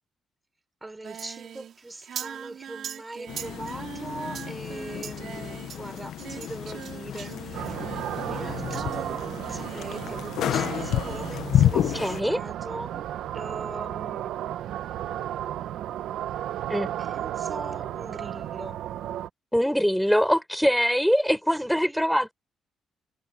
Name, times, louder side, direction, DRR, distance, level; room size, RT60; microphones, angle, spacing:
voice 1, 0.8-7.9 8.3-13.1 13.3-14.3 17.0-18.8 21.5-22.1, right 2 dB, 15° right, 5.8 m, -41 dB
Singing, 1.0-10.2 10.4-11.3, right 9 dB, 65° right, 4.7 m, -41 dB
sound 1, 3.3-12.2, left 11 dB, 75° left, 1.2 m, -30 dB
sound 2, 7.5-19.3, right 11 dB, 80° right, 1.6 m, -34 dB
voice 2, 11.7-12.4 16.7-16.9 19.5-22.3, equal, ahead, 6.2 m, -23 dB
cardioid pair, 90°, 0 cm